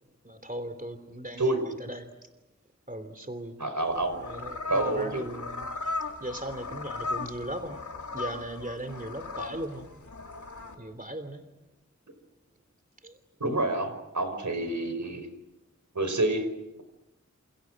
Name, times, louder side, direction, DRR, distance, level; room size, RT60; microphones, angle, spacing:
voice 1, 0.2-1.4 1.8-2.0 2.9-3.6 4.3-5.7 6.2-7.8 8.1-9.8 10.8-11.4 13.0-13.1, right 1 dB, 30° right, 10 dB, 3.0 m, -37 dB
voice 2, 3.6-4.4 4.7-5.2 13.4-15.3 15.9-16.5, right 2 dB, 80° right, 8 dB, 5.3 m, -28 dB
sound 1, 3.8-10.7, left 3 dB, 85° left, 3.8 m, -37 dB
28.5 x 28.5 x 6.5 m, 0.95 s
wide cardioid pair, 45°, 29 cm